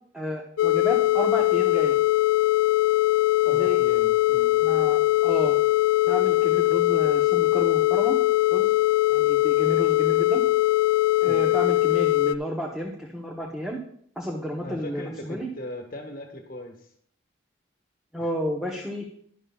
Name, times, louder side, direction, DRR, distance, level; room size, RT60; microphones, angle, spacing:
voice 1, 0.1-2.0 3.4-3.8 4.6-5.6 6.1-8.2 8.5-8.7 9.1-10.4 11.2-13.8 14.2-15.5 18.1-19.1, equal, 5° right, -2 dB, 1.0 m, -31 dB
sound 1, 0.6-12.4, left 17 dB, 75° left, 0.3 m, -21 dB
voice 2, 3.4-4.5 11.2-11.4 14.6-16.9 18.2-18.3, left 1 dB, 45° left, 3 dB, 1.5 m, -39 dB
12.0 x 11.0 x 2.4 m, 0.64 s
head